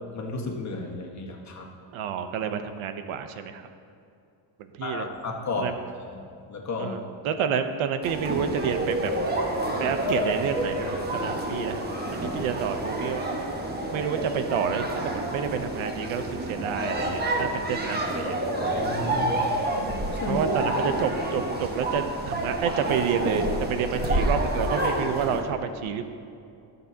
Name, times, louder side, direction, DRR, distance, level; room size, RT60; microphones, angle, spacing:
voice 1, 0.1-1.7 4.8-5.7 6.1-6.9 18.6-19.4 20.1-20.4, left 3 dB, 35° left, 0 dB, 1.5 m, -33 dB
voice 2, 1.9-3.6 4.8-5.1 5.6-5.7 6.8-9.1 9.8-11.8 12.1-13.4 13.9-18.4 20.3-26.1, right 7 dB, 75° right, 8 dB, 0.9 m, -29 dB
sound 1, 8.0-25.4, right 1 dB, 20° right, 1.3 m, -28 dB
19.5 x 6.8 x 2.8 m, 2.5 s
cardioid pair, 120°, 49 cm